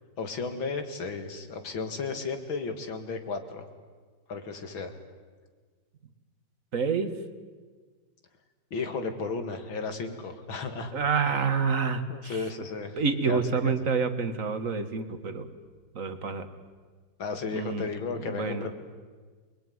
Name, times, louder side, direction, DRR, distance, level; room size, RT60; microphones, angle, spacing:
voice 1, 0.2-3.6 4.3-4.9 8.7-10.9 12.1-13.0 13.2-13.7 17.2-18.7, left 4 dB, 90° left, 7 dB, 3.1 m, -34 dB
voice 2, 6.7-7.1 10.9-12.5 13.0-15.5 15.9-16.5 17.5-17.9 18.2-18.7, right 5 dB, 45° right, 10 dB, 1.9 m, -28 dB
28.0 x 21.5 x 9.6 m, 1.5 s
omnidirectional pair, 2.1 m